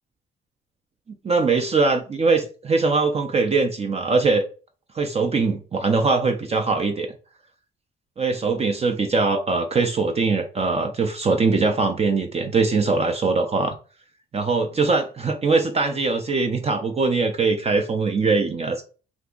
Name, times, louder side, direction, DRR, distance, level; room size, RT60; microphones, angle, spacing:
voice 1, 1.2-4.5 4.9-7.1 8.2-13.8 14.3-18.8, right 4 dB, 30° right, 0.5 m, -21 dB
2.7 x 2.4 x 3.7 m
cardioid pair, 90°, 20 cm